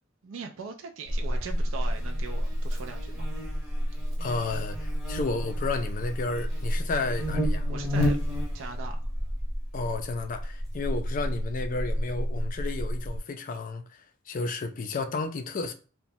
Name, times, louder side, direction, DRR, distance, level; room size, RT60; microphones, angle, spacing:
voice 1, 0.2-3.3 7.7-8.2 8.5-9.0, right 5 dB, 70° right, 0.4 m, -40 dB
Buzz, 1.1-13.2, equal, ahead, 0.9 m, -30 dB
voice 2, 4.2-7.7 9.7-15.7, left 3 dB, 40° left, 0.4 m, -32 dB
3.0 x 2.2 x 2.6 m
head